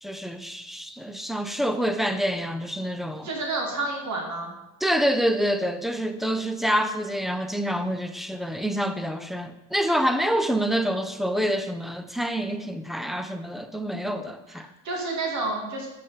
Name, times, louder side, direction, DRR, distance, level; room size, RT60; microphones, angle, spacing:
voice 1, 0.0-3.3 4.8-14.7, equal, ahead, 8 dB, 0.4 m, -27 dB
voice 2, 3.2-4.5 14.5-15.9, right 2 dB, 50° right, 0 dB, 2.2 m, -30 dB
6.4 x 5.3 x 4.4 m, 0.99 s
cardioid pair, 100°, 37 cm